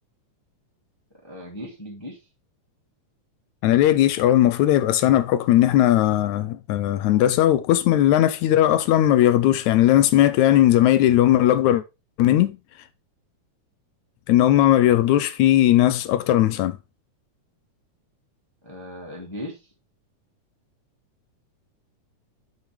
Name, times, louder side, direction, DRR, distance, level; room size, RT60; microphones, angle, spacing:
voice 1, 1.2-2.2 18.6-19.7, equal, 10° left, 2.0 m, -37 dB
voice 2, 3.6-11.8 12.2-12.6 14.3-16.8, left 13 dB, 75° left, 1.9 m, -18 dB
8.6 x 6.2 x 3.4 m
omnidirectional pair, 3.6 m